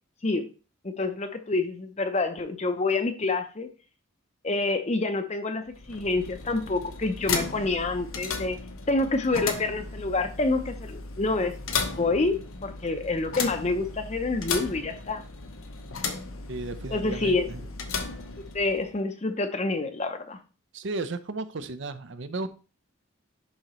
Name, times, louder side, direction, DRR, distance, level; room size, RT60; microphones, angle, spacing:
voice 1, 0.8-3.7 4.4-8.6 8.9-11.5 12.0-15.2 16.9-17.5 18.5-20.4, left 3 dB, 30° left, 0.6 m, -27 dB
sound 1, 5.7-19.0, left 4 dB, 80° left, 1.0 m, -35 dB
voice 2, 16.5-17.7 20.7-22.5, right 3 dB, 60° right, 0.6 m, -34 dB
11.0 x 3.8 x 3.1 m
head